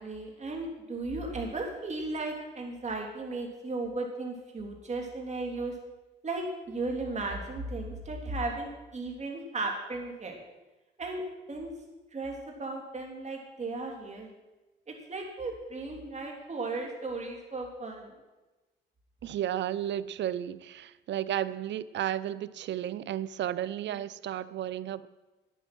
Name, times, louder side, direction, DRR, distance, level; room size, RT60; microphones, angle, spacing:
voice 1, 0.0-5.7 6.2-10.4 11.0-11.2 11.5-11.7 12.1-14.3 14.9-18.1, right 2 dB, 35° right, 1 dB, 3.3 m, -35 dB
voice 2, 19.2-25.1, right 11 dB, 65° right, 17 dB, 0.6 m, -33 dB
11.0 x 10.0 x 6.1 m, 1.1 s
cardioid pair, 90°, 20 cm